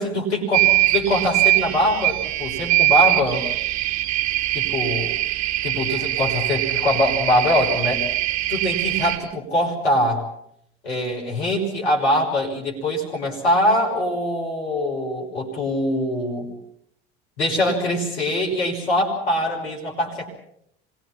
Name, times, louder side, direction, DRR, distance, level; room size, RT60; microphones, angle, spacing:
voice 1, 0.0-3.5 4.5-5.2 5.6-8.0 8.5-10.3 10.8-16.5 17.4-20.3, left 1 dB, 90° left, 0 dB, 6.1 m, -23 dB
sound 1, 0.5-9.2, right 16 dB, 55° right, 5.2 m, -22 dB
28.0 x 23.5 x 5.9 m, 0.71 s
hypercardioid pair, 65°, 32 cm